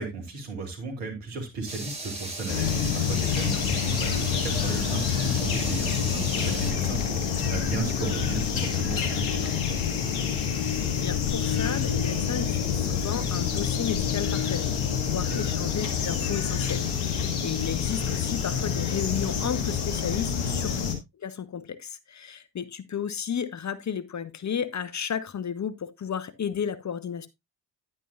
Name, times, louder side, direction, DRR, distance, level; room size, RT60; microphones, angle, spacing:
voice 1, 0.0-9.8 15.1-15.4 20.4-20.7, right 4 dB, 75° right, 2.8 m, -35 dB
sound 1, 1.7-6.7, right 2 dB, 10° right, 5.3 m, -37 dB
sound 2, 2.5-20.9, left 7 dB, 70° left, 2.3 m, -27 dB
voice 2, 11.0-20.7 21.2-27.3, left 7 dB, 35° left, 1.0 m, -33 dB
10.0 x 9.3 x 2.5 m
hypercardioid pair, 45°, 49 cm